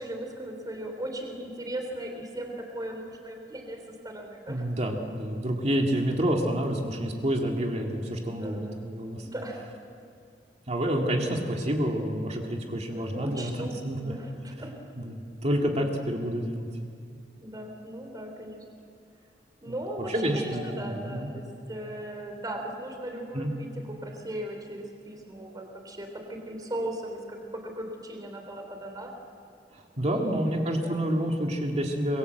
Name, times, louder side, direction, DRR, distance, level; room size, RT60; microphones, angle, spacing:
voice 1, 0.0-4.6 8.3-8.8 9.3-9.7 12.9-13.7 14.0-14.7 17.4-18.6 19.6-29.1 30.1-31.0, right 1 dB, 20° right, 2 dB, 3.4 m, -38 dB
voice 2, 4.5-9.2 10.7-14.0 15.0-16.7 20.1-21.3 23.3-23.5 29.7-32.2, equal, 40° right, 1 dB, 2.3 m, -28 dB
26.0 x 22.5 x 8.0 m, 2.3 s
head